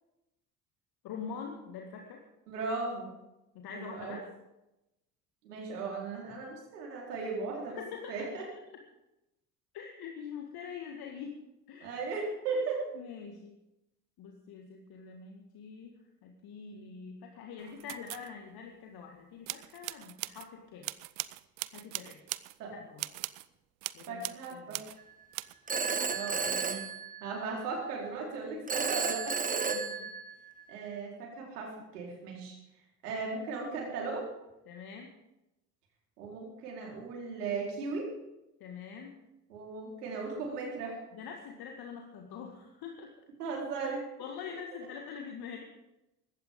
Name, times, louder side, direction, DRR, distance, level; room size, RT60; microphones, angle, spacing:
voice 1, 1.0-2.2 3.5-4.3 7.7-8.4 9.7-11.4 11.7-12.1 12.5-12.6 12.9-13.6 14.2-20.9 21.7-22.2 22.7-23.1 23.9-24.2 24.5-24.8 29.7-30.1 34.7-35.1 38.6-39.2 41.1-43.1 44.2-45.6, left 6 dB, 50° left, 2 dB, 2.0 m, -44 dB
voice 2, 2.5-3.1 3.7-4.2 5.4-7.8 8.1-8.4 11.8-12.8 22.6-22.7 24.1-24.9 26.1-26.9 27.2-29.8 30.7-32.5 33.0-34.3 36.2-38.1 39.5-41.0 43.4-44.0, right 4 dB, 75° right, -1 dB, 4.3 m, -37 dB
sound 1, 17.6-18.3 19.5-20.5 20.8-22.6 23.0-23.5 23.8-25.0 25.3-25.5, right 22 dB, 55° right, 0.7 m, -40 dB
Telephone, 25.7-27.6 28.7-30.6, right 5 dB, 15° right, 1.1 m, -33 dB
20.0 x 16.0 x 3.8 m, 0.94 s
figure-of-eight pair, 55°, 48 cm